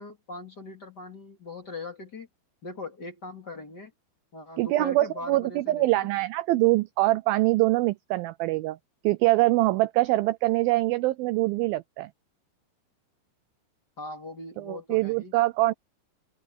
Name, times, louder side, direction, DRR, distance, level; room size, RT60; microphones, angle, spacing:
voice 1, 0.0-2.3 2.6-3.9 4.3-6.1 14.0-15.3, left 3 dB, 30° left, 2.4 m, -40 dB
voice 2, 4.6-8.8 9.0-12.1 14.6-15.7, right 19 dB, 85° right, 2.1 m, -24 dB
omnidirectional pair, 4.8 m